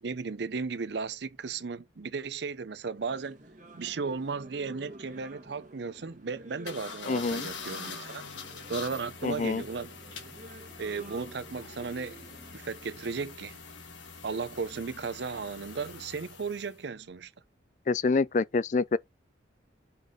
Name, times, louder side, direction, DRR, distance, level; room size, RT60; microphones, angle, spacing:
voice 1, 0.0-3.4 3.7-8.2 8.7-9.9 10.8-12.2 12.5-13.6 14.2-17.3, right 4 dB, 65° right, 0.6 m, -35 dB
sound 1, 3.0-12.6, right 2 dB, 45° right, 1.4 m, -50 dB
sound 2, 6.7-16.8, left 5 dB, 85° left, 1.8 m, -45 dB
voice 2, 7.1-7.5 9.2-9.6 17.9-19.0, left 4 dB, 40° left, 0.3 m, -27 dB
5.4 x 4.0 x 5.0 m
head